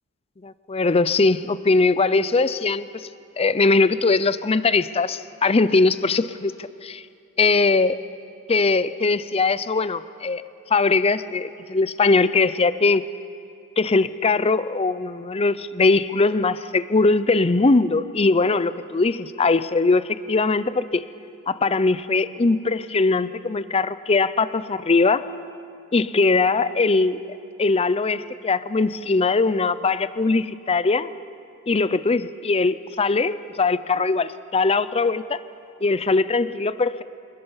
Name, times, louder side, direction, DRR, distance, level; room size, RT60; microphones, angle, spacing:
voice 1, 0.4-3.1 3.4-7.0 7.4-8.0 8.5-10.4 10.7-13.0 13.8-21.0 21.5-25.2 25.9-27.2 27.6-31.1 31.7-35.4 35.8-37.0, left 3 dB, 25° left, 15 dB, 0.5 m, -21 dB
27.0 x 20.0 x 5.7 m, 2.5 s
head